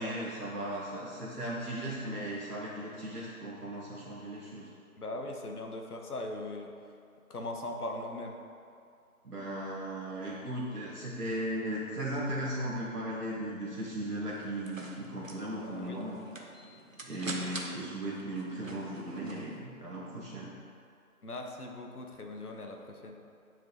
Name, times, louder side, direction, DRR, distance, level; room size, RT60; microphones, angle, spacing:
voice 1, 0.0-4.7 9.2-16.2 17.0-20.5, right 1 dB, 85° right, -6 dB, 1.4 m, -37 dB
voice 2, 5.0-6.7 7.3-8.4 15.6-16.0 21.2-23.2, left 2 dB, 75° left, 2 dB, 1.0 m, -39 dB
sound 1, 14.3-19.6, right 2 dB, 60° right, 0.8 m, -45 dB
9.2 x 5.1 x 2.9 m, 2.5 s
figure-of-eight pair, 175°, 45 cm